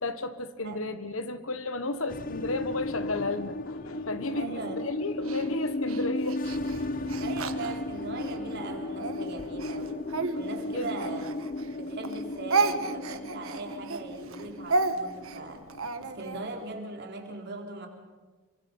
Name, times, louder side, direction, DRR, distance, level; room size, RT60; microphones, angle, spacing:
voice 1, 0.0-6.4 6.9-7.1 10.6-11.1, left 2 dB, 75° left, 11 dB, 1.4 m, -33 dB
sound 1, 2.1-16.8, left 2 dB, 40° left, 0.7 m, -35 dB
voice 2, 4.3-4.8 7.2-10.0 10.3-11.5 11.8-15.7 16.0-17.9, right 3 dB, 50° right, 2 dB, 3.8 m, -39 dB
Speech, 5.2-8.4 8.9-11.8 12.0-16.4, right 3 dB, 80° right, 1.4 m, -32 dB
28.5 x 25.0 x 5.6 m, 1.3 s
head